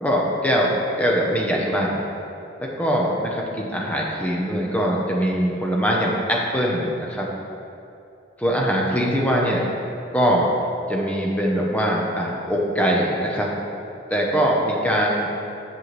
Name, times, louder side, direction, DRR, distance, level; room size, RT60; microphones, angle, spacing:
voice 1, 0.0-2.0 2.6-7.3 8.4-9.7 10.1-10.5 10.9-13.5 14.1-15.3, equal, 10° left, -3 dB, 0.8 m, -22 dB
7.6 x 7.6 x 3.2 m, 2.7 s
head